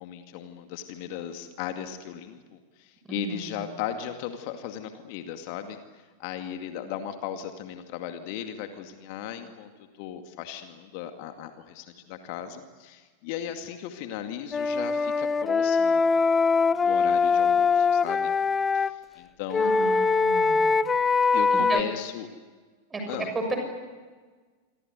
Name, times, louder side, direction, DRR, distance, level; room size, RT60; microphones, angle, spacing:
voice 1, 0.0-9.7 10.0-16.4 16.8-18.3 18.7-19.9 21.3-22.3 23.1-23.3, left 10 dB, 45° left, 6 dB, 2.2 m, -37 dB
voice 2, 3.1-3.6 19.6-20.8 21.2-21.8 22.9-23.6, right 3 dB, 15° right, 4 dB, 6.8 m, -34 dB
Wind instrument woodwind instrument, 14.5-18.9 19.5-21.8, left 4 dB, 15° left, 0.8 m, -22 dB
27.5 x 24.0 x 8.2 m, 1.4 s
figure-of-eight pair, 90°, 0 cm